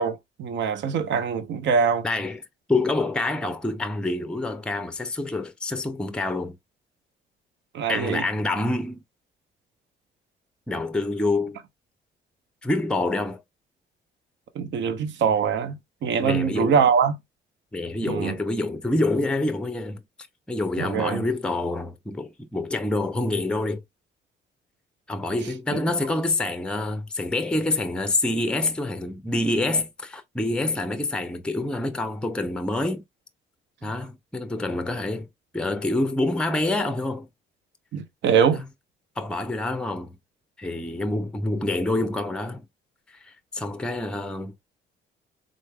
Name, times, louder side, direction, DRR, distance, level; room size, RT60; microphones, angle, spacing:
voice 1, 0.0-2.1 7.7-8.2 14.6-17.1 18.1-18.3 20.8-21.2 37.9-38.6, right 6 dB, 70° right, 0.7 m, -23 dB
voice 2, 2.0-2.4 2.7-6.5 7.9-9.0 10.7-11.6 12.6-13.4 16.2-16.8 17.7-20.0 20.5-23.8 25.1-33.0 33.8-35.3 35.5-37.3 38.5-38.7 39.2-40.2 40.6-42.7 43.2-44.5, left 2 dB, 5° left, 0.5 m, -27 dB
3.8 x 3.2 x 2.2 m
cardioid pair, 90°, 20 cm